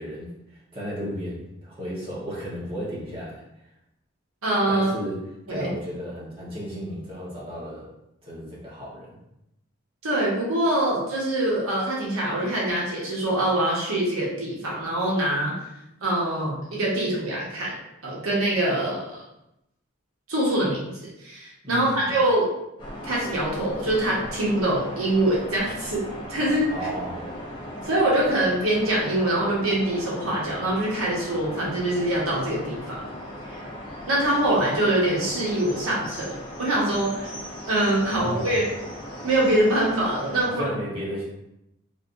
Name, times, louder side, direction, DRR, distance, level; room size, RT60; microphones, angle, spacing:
voice 1, 0.0-3.4 4.7-5.2 5.5-7.9 8.2-9.2 21.6-22.2 26.7-27.3 38.2-38.5 40.4-41.2, equal, 25° right, -6 dB, 0.8 m, -34 dB
voice 2, 4.4-4.9 5.5-5.7 10.0-15.5 16.0-17.7 18.0-19.2 20.3-20.8 21.2-22.5 23.0-26.0 26.3-26.7 27.8-33.0 33.5-33.6 34.1-37.3 37.7-38.7 39.2-40.6, right 1 dB, 80° right, -4 dB, 1.0 m, -24 dB
sound 1, 22.8-40.5, equal, 20° left, 0.6 m, -38 dB
3.3 x 2.5 x 2.5 m, 0.86 s
head